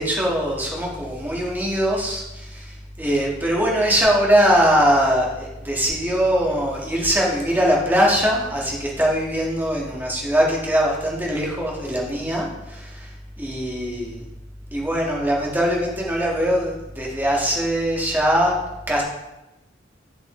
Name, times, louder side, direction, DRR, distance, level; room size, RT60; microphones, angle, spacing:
voice 1, 0.0-13.1 13.4-14.2 14.7-18.5 18.9-19.0, equal, 10° right, -3 dB, 1.6 m, -21 dB
8.2 x 7.4 x 3.2 m, 0.97 s
head